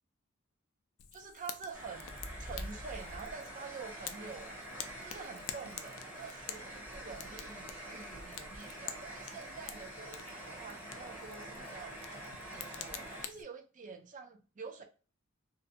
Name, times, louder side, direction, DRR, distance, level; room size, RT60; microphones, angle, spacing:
Fire, 1.0-13.4, left 10 dB, 70° left, 0.3 m, -49 dB
voice 1, 1.1-4.5 5.0-12.0 12.5-14.8, right 5 dB, 40° right, 0.4 m, -47 dB
sound 1, 1.7-13.3, right 1 dB, 10° right, 0.8 m, -46 dB
2.5 x 2.1 x 2.6 m
head